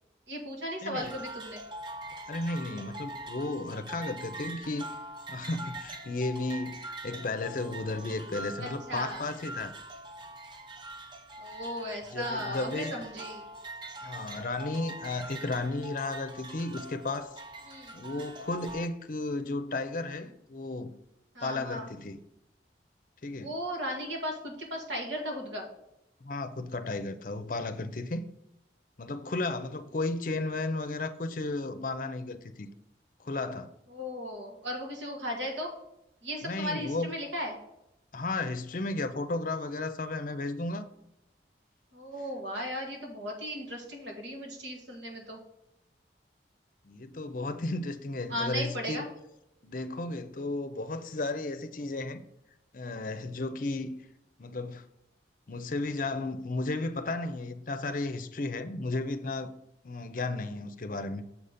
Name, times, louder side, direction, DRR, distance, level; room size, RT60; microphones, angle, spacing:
voice 1, 0.3-1.6 8.6-9.3 11.4-13.5 17.7-18.0 21.3-21.9 23.4-25.7 33.9-35.7 36.2-37.6 41.9-45.4 48.3-49.1, equal, 85° right, 2.0 m, -36 dB
voice 2, 0.8-1.1 2.3-4.9 5.3-9.7 12.1-13.0 14.0-17.3 17.9-20.9 21.4-22.2 23.2-23.6 26.2-28.2 29.0-32.7 33.2-33.7 36.4-37.1 38.1-40.9 46.8-49.0 49.6-52.2 52.7-54.0 54.4-54.8 55.5-59.5 59.8-61.2, left 2 dB, 50° left, 0.6 m, -34 dB
sound 1, 1.0-18.9, right 1 dB, 25° right, 0.6 m, -43 dB
7.2 x 4.2 x 5.0 m
head